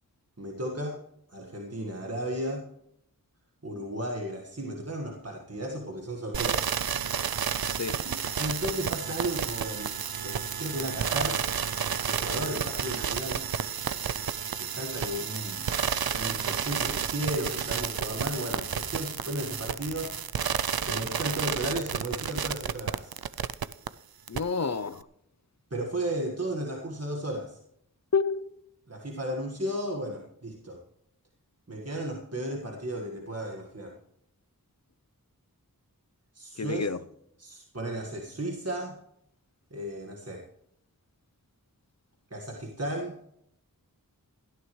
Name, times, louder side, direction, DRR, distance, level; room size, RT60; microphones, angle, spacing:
voice 1, 0.4-1.0 1.3-2.7 3.6-6.7 8.0-10.0 10.2-11.4 12.0-13.4 14.6-15.6 16.1-20.2 20.8-23.1 25.7-27.6 28.9-30.8 31.7-34.0 36.3-36.9 37.4-39.0 39.7-40.5 42.3-43.2, right 1 dB, 45° right, 1.7 m, -34 dB
sound 1, 6.3-23.9 24.3-24.4, right 8 dB, 80° right, 0.5 m, -31 dB
voice 2, 7.7-8.0 24.3-25.0 28.1-28.6 36.6-37.0, left 5 dB, 50° left, 0.6 m, -29 dB
sound 2, 14.7-21.4, left 2 dB, 65° left, 1.8 m, -55 dB
18.0 x 13.0 x 3.2 m
wide cardioid pair, 40°, 36 cm